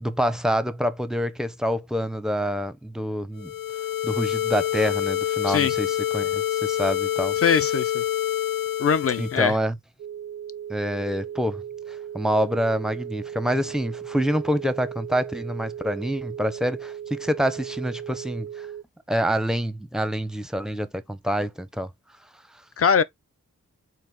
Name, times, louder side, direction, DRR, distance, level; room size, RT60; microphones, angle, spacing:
voice 1, 0.0-3.5 4.0-7.4 9.2-9.8 10.7-11.6 11.9-18.7 19.1-21.9, equal, ahead, 0.6 m, -26 dB
sound 1, 3.4-9.5, left 11 dB, 85° left, 0.5 m, -26 dB
voice 2, 7.4-8.0 8.8-9.6 22.8-23.0, left 6 dB, 45° left, 0.6 m, -21 dB
sound 2, 10.0-18.8, right 9 dB, 55° right, 0.4 m, -37 dB
4.0 x 2.6 x 3.5 m
cardioid pair, 50°, 33 cm